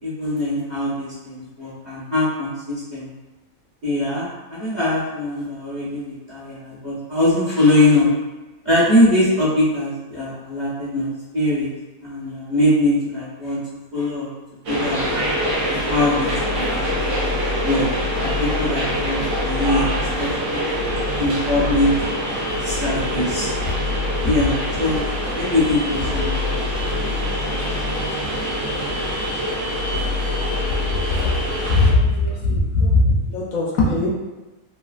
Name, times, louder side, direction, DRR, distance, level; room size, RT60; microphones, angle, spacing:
voice 1, 0.0-3.1 3.8-8.1 8.6-11.7 12.0-13.6 13.9-14.3 14.7-15.1 15.9-16.7 17.6-17.9 18.4-19.9 20.2-20.6 21.2-21.9 22.6-23.5 24.2-25.0 25.3-26.3, left 1 dB, 30° right, -11 dB, 1.0 m, -21 dB
sound 1, 14.7-31.9, left 1 dB, 65° right, 1.2 m, -24 dB
voice 2, 31.7-34.1, left 2 dB, 70° left, -3 dB, 0.9 m, -19 dB
3.2 x 2.3 x 2.3 m, 1.1 s
omnidirectional pair, 1.6 m